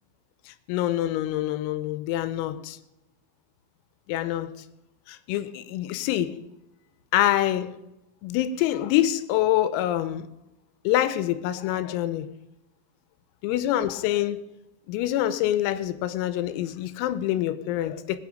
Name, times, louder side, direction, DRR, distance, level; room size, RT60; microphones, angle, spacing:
voice 1, 0.5-2.8 4.1-4.5 5.1-6.4 7.1-7.7 8.2-10.3 10.9-12.3 13.4-14.4 14.9-18.2, left 13 dB, 85° left, 14 dB, 3.5 m, -26 dB
20.0 x 9.1 x 5.0 m, 0.94 s
omnidirectional pair, 5.9 m